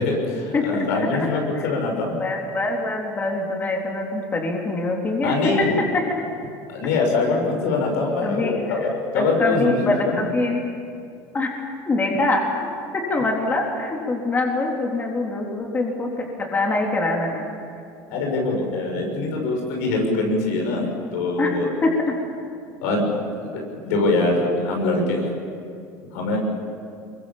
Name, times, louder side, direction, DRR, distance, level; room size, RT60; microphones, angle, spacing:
voice 1, 0.0-2.2 5.2-5.7 6.7-10.2 18.1-21.7 22.8-23.0 23.4-25.3 26.1-26.4, left 2 dB, 90° left, 1 dB, 6.3 m, -23 dB
voice 2, 0.5-1.3 1.5-1.7 2.2-5.7 5.9-6.2 8.2-8.9 9.1-10.6 11.3-12.4 12.9-17.5 21.4-22.2, left 2 dB, 20° left, 0 dB, 3.8 m, -24 dB
23.5 x 23.0 x 7.5 m, 2.5 s
supercardioid pair, 125°, 8 cm